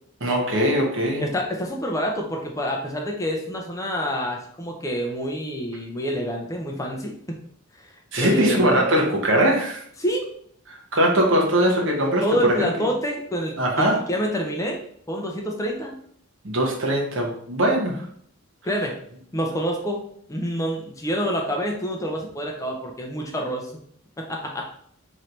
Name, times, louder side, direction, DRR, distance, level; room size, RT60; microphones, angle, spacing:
voice 1, 0.2-1.2 8.1-9.8 10.7-12.9 13.6-14.0 16.4-18.0, right 1 dB, 60° right, 0 dB, 1.0 m, -21 dB
voice 2, 1.2-7.2 7.8-8.9 10.0-10.2 12.2-14.8 15.1-15.9 18.6-19.0 19.3-20.0 20.3-23.7 24.2-24.7, equal, 15° left, 0 dB, 0.4 m, -27 dB
3.2 x 2.6 x 4.3 m, 0.64 s
head